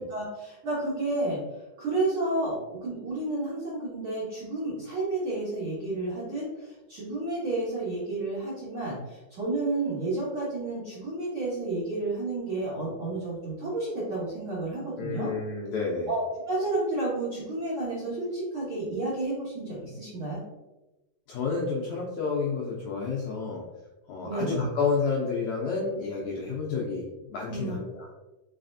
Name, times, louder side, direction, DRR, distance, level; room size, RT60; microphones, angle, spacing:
voice 1, 0.0-1.4 1.8-15.3 16.1-20.4 24.2-24.6 27.5-27.8, right 2 dB, 70° right, -9 dB, 1.2 m, -31 dB
voice 2, 15.0-16.1 21.3-23.6 24.1-28.1, left 4 dB, 80° left, -4 dB, 1.6 m, -30 dB
4.8 x 4.1 x 2.6 m, 1.0 s
omnidirectional pair, 4.0 m